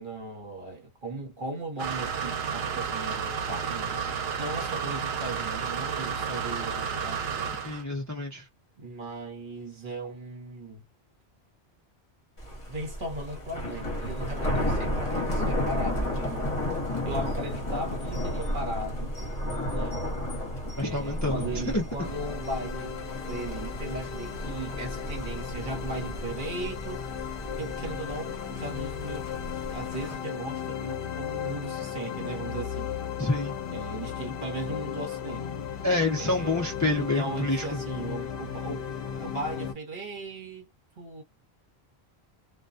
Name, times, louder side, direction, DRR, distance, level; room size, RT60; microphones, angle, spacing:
voice 1, 0.0-7.6 8.8-10.8 12.7-16.6 17.0-19.1 19.7-20.0 20.8-27.1 27.6-33.0 33.7-35.5 36.2-40.7 41.0-41.2, right 2 dB, 50° right, 1.2 m, -37 dB
sound 1, 1.8-7.8, right 6 dB, 70° right, 0.9 m, -31 dB
voice 2, 7.6-8.5 20.8-21.8 33.2-33.6 35.8-37.8, left 2 dB, 20° left, 0.5 m, -28 dB
Thunder, 12.4-30.1, equal, 40° left, 1.0 m, -33 dB
sound 2, 22.0-39.7, left 8 dB, 65° left, 0.8 m, -36 dB
2.3 x 2.2 x 2.6 m
omnidirectional pair, 1.1 m